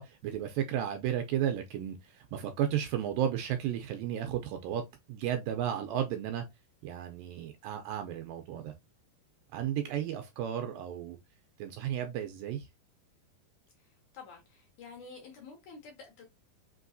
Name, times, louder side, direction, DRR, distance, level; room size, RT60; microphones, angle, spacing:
voice 1, 0.0-4.8 5.1-6.5 6.8-8.7 9.5-11.2 11.6-12.7, right 10 dB, 80° right, 2.0 m, -33 dB
voice 2, 14.1-16.3, left 4 dB, 70° left, 1.9 m, -49 dB
5.5 x 2.9 x 2.5 m
omnidirectional pair, 4.3 m